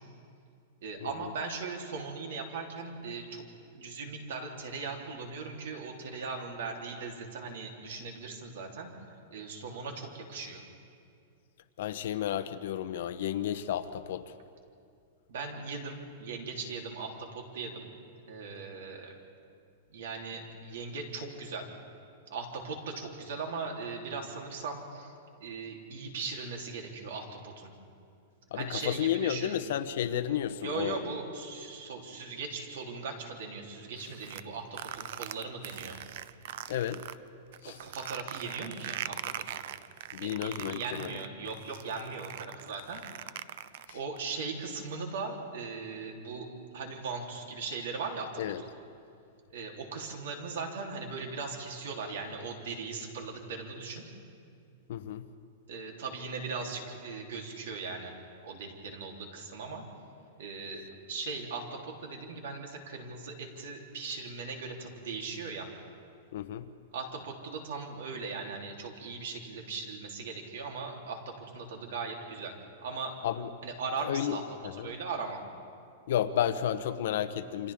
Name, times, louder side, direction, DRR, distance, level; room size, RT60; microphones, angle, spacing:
voice 1, 0.8-3.4 3.7-8.9 9.3-10.6 15.3-17.9 18.2-19.2 19.9-21.7 22.3-25.1 25.4-27.7 28.5-29.6 30.6-36.0 37.6-39.6 40.2-43.4 43.9-46.5 46.7-48.7 49.5-54.0 55.7-58.1 58.4-59.8 60.4-65.7 66.9-72.5 72.8-73.1 73.6-74.4 74.7-75.4, right 4 dB, 65° right, 1 dB, 3.4 m, -39 dB
voice 2, 11.8-14.3 28.5-31.0 36.7-37.0 37.6-37.8 40.1-41.1 43.9-44.0 48.4-48.6 54.9-55.3 66.3-66.7 73.2-73.5 74.0-74.4 74.6-74.9 76.1-77.7, left 10 dB, 55° left, 11 dB, 0.9 m, -32 dB
sound 1, 34.0-37.2 37.5-44.2, right 11 dB, 50° right, 0.5 m, -41 dB
28.5 x 26.0 x 3.7 m, 2.4 s
supercardioid pair, 170°, 0 cm